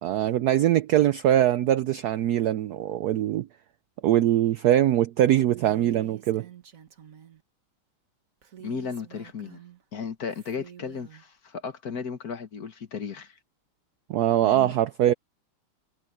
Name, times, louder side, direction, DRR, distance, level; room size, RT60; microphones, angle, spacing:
voice 1, 0.0-3.5 4.0-6.5 14.1-15.1, right 12 dB, 85° right, 0.8 m, -22 dB
Female speech woman speaking, 5.5-7.4 8.4-9.8 10.3-11.2, right 10 dB, 45° right, 1.7 m, -48 dB
voice 2, 8.6-9.6 9.9-13.3 14.4-14.7, left 6 dB, 50° left, 1.8 m, -35 dB
omnidirectional pair, 2.3 m